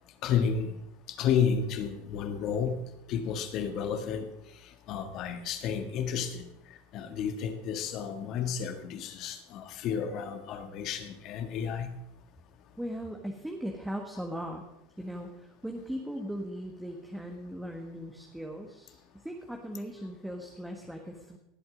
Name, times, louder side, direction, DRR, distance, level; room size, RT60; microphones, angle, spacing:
voice 1, 0.2-0.8 1.1-2.8 3.1-4.3 4.9-6.5 6.9-11.9, left 7 dB, 50° left, 8 dB, 1.7 m, -31 dB
voice 2, 12.8-14.6 15.0-21.4, equal, 5° right, 2 dB, 1.5 m, -38 dB
18.0 x 7.9 x 5.1 m, 0.87 s
hypercardioid pair, 105°, 0 cm